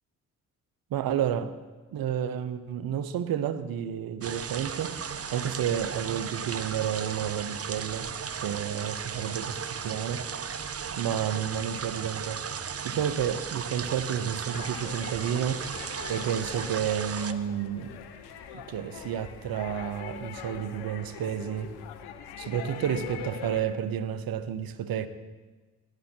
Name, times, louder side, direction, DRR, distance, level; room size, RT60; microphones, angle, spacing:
voice 1, 0.9-1.6 1.9-5.0 5.3-8.1 8.4-10.2 11.0-12.4 12.8-15.6 16.1-18.0 18.5-21.7 22.4-25.1, right 9 dB, 70° right, 0.9 m, -31 dB
sound 1, 4.2-17.3, right 7 dB, 40° right, 0.9 m, -36 dB
sound 2, 14.5-23.6, left 8 dB, 85° left, 1.1 m, -42 dB
17.0 x 12.0 x 4.5 m
hypercardioid pair, 45°, 37 cm